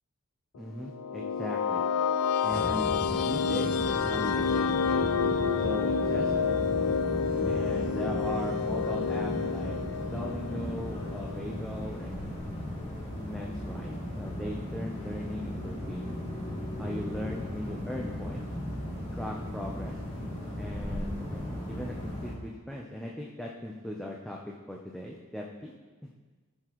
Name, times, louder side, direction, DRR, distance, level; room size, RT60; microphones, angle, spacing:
voice 1, 0.6-1.8 2.4-5.0 5.6-6.7 7.4-12.7 13.2-16.2 16.8-18.5 19.1-20.0 20.6-24.4 24.7-25.7, left 1 dB, 5° left, -2 dB, 0.6 m, -39 dB
sound 1, 0.8-11.6, left 6 dB, 90° left, 0.4 m, -29 dB
sound 2, 2.5-22.3, left 1 dB, 30° left, 2.7 m, -36 dB
15.5 x 6.8 x 3.1 m, 1.3 s
head